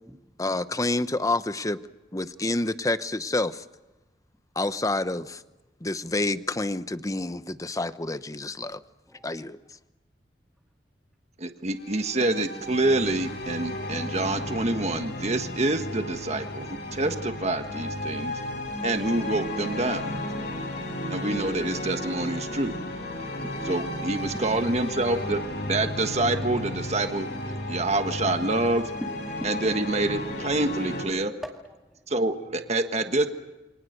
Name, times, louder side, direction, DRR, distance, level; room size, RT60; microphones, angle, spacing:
voice 1, 0.4-1.8 2.1-3.6 4.6-5.4 5.8-8.8 9.2-9.6, left 2 dB, 20° left, 13 dB, 0.9 m, -28 dB
voice 2, 2.1-2.6 9.1-9.3 31.4-32.1, equal, ahead, 0 dB, 2.2 m, -45 dB
voice 3, 11.4-18.4 18.8-20.1 21.1-22.8 23.7-27.3 27.7-28.9 29.4-31.3 32.1-33.3, right 2 dB, 40° right, 7 dB, 1.5 m, -27 dB
sound 1, 11.7-31.1, left 1 dB, 70° left, 7.9 m, -34 dB
29.0 x 25.0 x 6.7 m, 1.1 s
head